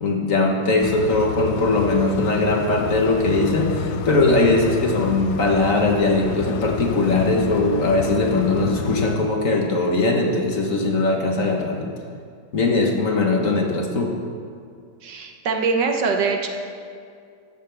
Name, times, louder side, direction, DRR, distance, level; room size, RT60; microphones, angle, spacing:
voice 1, 0.0-11.9 12.5-14.1, left 2 dB, 50° left, 1 dB, 1.4 m, -20 dB
sound 1, 0.8-9.2, left 8 dB, 70° left, 1.1 m, -30 dB
voice 2, 15.0-16.5, right 4 dB, 65° right, 3 dB, 1.5 m, -23 dB
14.0 x 13.5 x 3.4 m, 2.2 s
omnidirectional pair, 2.0 m